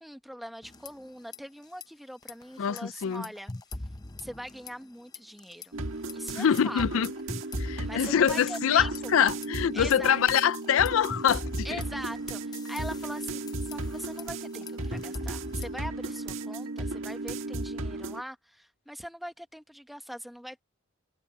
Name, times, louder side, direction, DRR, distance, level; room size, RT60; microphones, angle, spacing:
voice 1, 0.0-3.5 4.2-5.8 6.1-6.8 7.8-8.9 9.7-10.2 11.6-20.6, equal, ahead, 1.3 m, -42 dB
sound 1, 0.6-1.4 1.6-1.8 2.2-4.9 5.1-5.7 6.1-9.5 9.9-15.9, left 2 dB, 20° left, 0.7 m, -42 dB
voice 2, 2.6-3.2 6.3-7.1 7.6-11.7, left 8 dB, 90° left, 0.4 m, -25 dB
sound 2, 5.7-18.2, right 2 dB, 85° right, 1.7 m, -35 dB
head